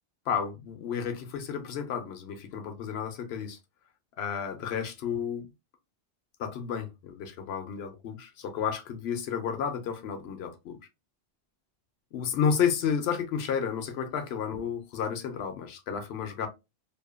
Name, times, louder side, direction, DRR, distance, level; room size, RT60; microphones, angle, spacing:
voice 1, 0.3-3.6 4.2-5.5 6.4-10.8 12.1-16.5, left 7 dB, 70° left, 0.8 m, -31 dB
2.7 x 2.2 x 2.3 m
omnidirectional pair, 1.2 m